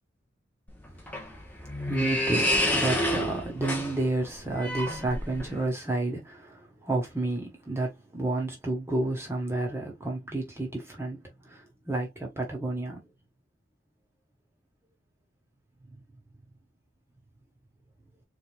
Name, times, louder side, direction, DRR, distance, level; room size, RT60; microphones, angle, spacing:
sound 1, 0.7-5.7, left 1 dB, 10° left, 1.0 m, -29 dB
voice 1, 1.9-11.2 11.4-13.0 15.9-16.0, right 2 dB, 15° right, 1.4 m, -31 dB
4.3 x 3.5 x 2.5 m
head